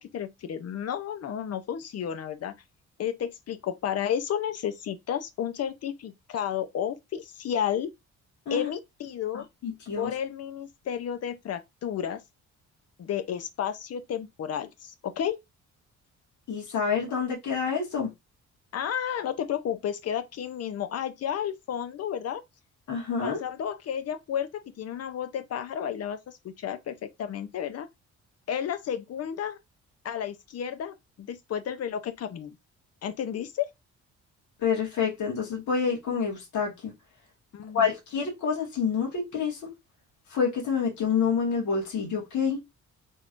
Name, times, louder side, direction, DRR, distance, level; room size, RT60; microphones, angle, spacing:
voice 1, 0.0-2.5 3.0-7.9 8.5-9.5 10.0-12.2 13.0-15.4 18.7-22.4 23.2-27.9 28.5-29.6 30.0-32.5 33.0-33.7 37.5-37.9, left 9 dB, 55° left, 0.7 m, -32 dB
voice 2, 9.3-10.1 16.5-18.1 22.9-23.4 34.6-36.9 37.7-39.7 40.3-42.6, left 6 dB, 70° left, 1.8 m, -28 dB
3.7 x 3.1 x 2.5 m
cardioid pair, 90°, 30 cm